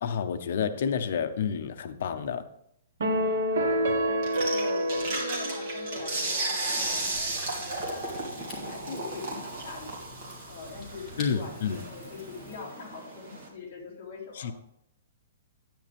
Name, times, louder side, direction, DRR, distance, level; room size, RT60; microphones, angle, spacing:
voice 1, 0.0-2.4 11.2-11.8 14.3-14.5, left 7 dB, 45° left, 9 dB, 0.8 m, -29 dB
sound 1, 3.0-6.5, equal, 70° right, 1.4 m, -28 dB
sound 2, 4.2-13.5, right 2 dB, 35° right, 2.6 m, -35 dB
voice 2, 4.5-7.1 7.5-10.0 10.5-14.5, left 3 dB, 20° left, -7 dB, 3.2 m, -42 dB
Rain / Fire, 6.8-12.6, left 1 dB, ahead, 2.7 m, -48 dB
10.5 x 9.5 x 3.5 m, 0.75 s
hypercardioid pair, 180°, 0 cm